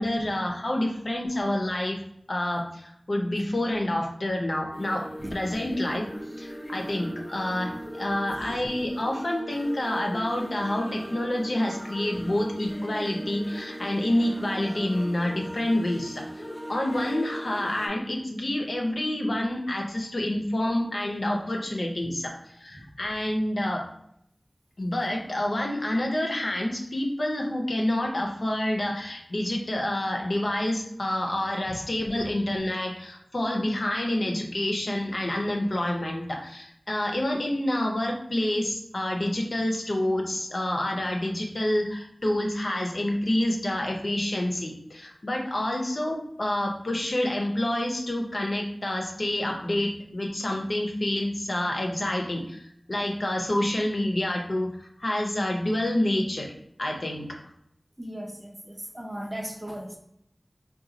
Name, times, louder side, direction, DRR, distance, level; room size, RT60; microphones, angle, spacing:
voice 1, 0.0-2.0 2.3-5.0 5.3-6.1 6.4-16.2 16.7-22.3 22.6-23.8 24.8-54.7 55.0-56.5 56.8-57.2, left 1 dB, 75° left, 1 dB, 0.6 m, -28 dB
sound 1, 4.7-17.9, equal, 30° left, 0.7 m, -39 dB
voice 2, 58.0-60.0, right 1 dB, 25° right, 1 dB, 0.5 m, -37 dB
3.9 x 2.3 x 2.7 m, 0.72 s
wide cardioid pair, 55°, 0 cm